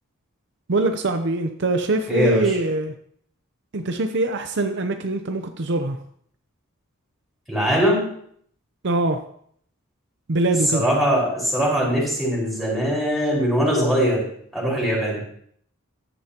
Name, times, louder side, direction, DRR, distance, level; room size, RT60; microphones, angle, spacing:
voice 1, 0.7-2.9 3.7-6.0 8.8-9.2 10.3-10.8, right 2 dB, 55° right, 6 dB, 0.7 m, -23 dB
voice 2, 2.1-2.6 7.5-8.0 10.7-14.2 14.5-15.2, equal, ahead, -6 dB, 5.1 m, -21 dB
14.5 x 11.0 x 2.9 m, 0.65 s
head